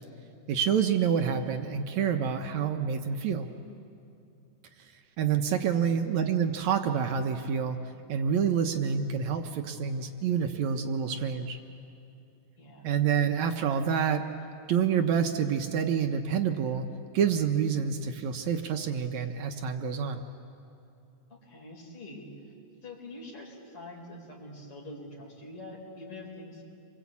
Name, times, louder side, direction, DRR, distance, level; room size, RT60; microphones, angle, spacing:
voice 1, 0.5-3.5 5.2-7.8 8.1-11.6 12.8-14.2 14.7-16.9 17.1-20.2, right 7 dB, 70° right, 6 dB, 2.1 m, -27 dB
voice 2, 5.7-6.0 12.6-12.9 21.3-22.3 22.8-26.6, left 1 dB, 45° left, -1 dB, 5.2 m, -45 dB
28.0 x 23.0 x 8.4 m, 2.7 s
omnidirectional pair, 3.5 m